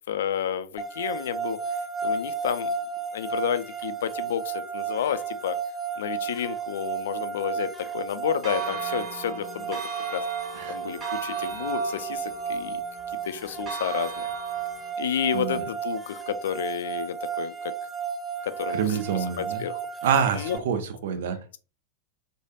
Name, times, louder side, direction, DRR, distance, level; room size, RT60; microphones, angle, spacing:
voice 1, 0.1-1.6 2.0-2.7 3.1-5.6 6.0-9.8 10.1-10.2 10.7-12.8 13.3-14.3 15.0-17.7 18.4-19.0 19.4-19.8 20.3-20.6 21.1-21.2, left 9 dB, 60° left, 11 dB, 0.3 m, -30 dB
sound 1, 0.8-20.6, right 6 dB, ahead, 0.5 m, -33 dB
Church bell, 8.4-14.9, right 6 dB, 25° right, 1.1 m, -38 dB
voice 2, 15.3-15.6 18.7-19.6 20.0-21.4, right 7 dB, 55° right, 9 dB, 0.6 m, -27 dB
3.2 x 2.2 x 2.8 m, 0.35 s
figure-of-eight pair, 90°, 0 cm